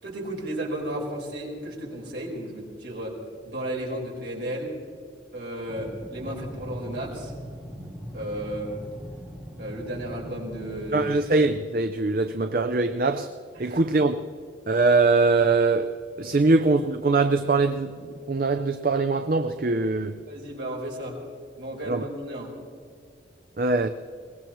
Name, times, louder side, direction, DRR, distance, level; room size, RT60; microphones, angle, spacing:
voice 1, 0.0-3.2 3.4-4.8 5.3-7.3 8.1-8.8 9.6-11.1 13.5-13.8 20.3-21.2 21.6-22.5, right 1 dB, 70° right, -3 dB, 4.7 m, -33 dB
sound 1, 5.7-11.2, equal, 10° right, 2.6 m, -40 dB
voice 2, 10.9-13.3 13.6-14.2 14.7-15.9 16.2-17.9 18.3-20.2 21.9-22.1 23.6-23.9, right 3 dB, 50° right, 7 dB, 0.6 m, -22 dB
22.0 x 20.0 x 3.1 m, 2.2 s
head